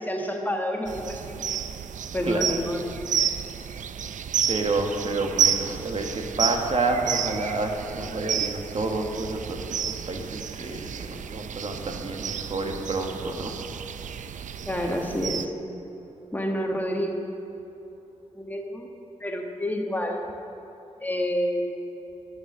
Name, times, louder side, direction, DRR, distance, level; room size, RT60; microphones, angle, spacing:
voice 1, 0.0-1.4 2.1-2.8 14.6-15.5 16.3-17.2 18.3-18.9 19.2-20.2 21.0-21.7, equal, 15° left, 1 dB, 1.3 m, -28 dB
sound 1, 0.9-15.4, right 8 dB, 85° right, 0.4 m, -31 dB
voice 2, 2.2-2.6 3.7-3.9 4.5-13.5, right 2 dB, 50° right, 3 dB, 1.3 m, -29 dB
13.0 x 7.0 x 7.4 m, 2.9 s
cardioid pair, 80°, 13 cm